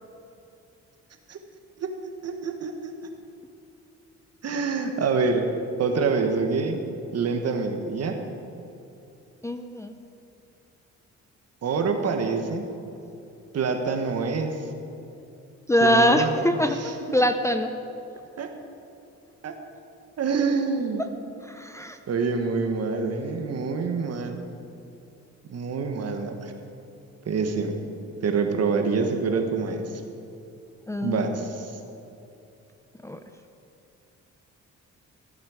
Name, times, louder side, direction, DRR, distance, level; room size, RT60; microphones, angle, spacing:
voice 1, 2.2-2.9 4.4-5.5 5.8-6.8 7.1-8.2 11.6-12.7 13.5-14.6 15.8-16.3 16.8-17.2 18.4-18.5 19.4-19.5 20.2-21.0 22.1-24.4 25.5-26.4 27.2-27.8 28.2-29.8 31.0-31.7, right 4 dB, 55° right, 5 dB, 1.4 m, -26 dB
voice 2, 9.4-9.9 15.7-17.7 21.4-22.0 30.9-31.4 33.0-33.2, equal, 10° left, 6 dB, 0.6 m, -23 dB
15.0 x 8.6 x 5.0 m, 2.7 s
cardioid pair, 90°, 30 cm